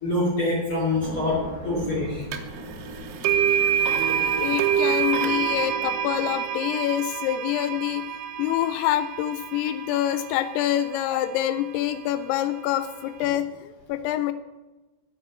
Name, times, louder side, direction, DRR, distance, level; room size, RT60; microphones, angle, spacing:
voice 1, 0.0-2.2, left 2 dB, 35° left, -5 dB, 2.9 m, -25 dB
sound 1, 0.9-6.6, right 2 dB, 30° right, 2.9 m, -38 dB
sound 2, 2.3-2.4 3.2-11.3, right 9 dB, 80° right, 3.0 m, -26 dB
voice 2, 4.4-8.0 8.4-14.3, left 12 dB, 85° left, 10 dB, 2.5 m, -26 dB
9.7 x 7.3 x 8.6 m, 1.1 s
omnidirectional pair, 4.8 m